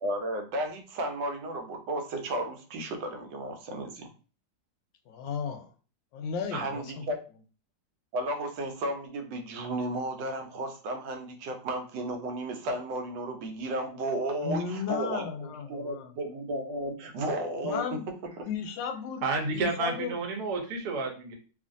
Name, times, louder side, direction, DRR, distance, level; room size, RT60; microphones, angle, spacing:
voice 1, 0.0-4.1 6.5-7.2 8.1-17.9 18.4-18.5, right 1 dB, 85° right, 4 dB, 1.3 m, -33 dB
voice 2, 5.1-5.7 6.1-7.1 14.4-16.1 17.6-18.0 18.5-19.2 19.5-20.2, left 6 dB, 85° left, 5 dB, 1.3 m, -34 dB
voice 3, 19.2-21.3, right 3 dB, 65° right, 2 dB, 1.2 m, -30 dB
3.0 x 2.5 x 2.5 m, 0.37 s
omnidirectional pair, 1.9 m